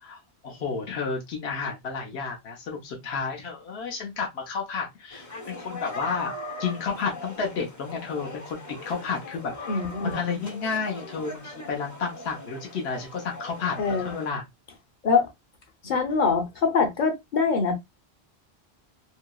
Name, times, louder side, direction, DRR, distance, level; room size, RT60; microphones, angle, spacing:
voice 1, 0.0-6.3 6.6-9.5 10.0-14.4, left 5 dB, 80° left, 1.0 m, -31 dB
sound 1, 5.1-14.3, left 2 dB, 25° left, 0.5 m, -40 dB
voice 2, 9.7-10.2 13.8-14.1 15.0-15.3 15.8-17.7, left 5 dB, 50° left, 0.8 m, -24 dB
2.9 x 2.8 x 2.2 m
omnidirectional pair, 1.1 m